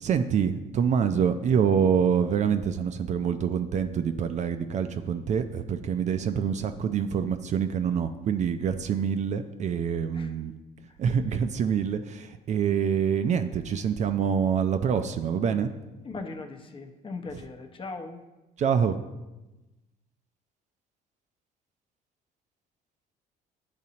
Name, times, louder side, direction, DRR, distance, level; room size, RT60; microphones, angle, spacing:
voice 1, 0.0-10.5 11.0-15.7 17.3-17.4 18.6-19.0, right 7 dB, 45° right, 8 dB, 0.4 m, -26 dB
voice 2, 16.0-18.2, left 3 dB, 30° left, 4 dB, 0.7 m, -39 dB
10.5 x 4.1 x 2.8 m, 1.1 s
cardioid pair, 110°, 17 cm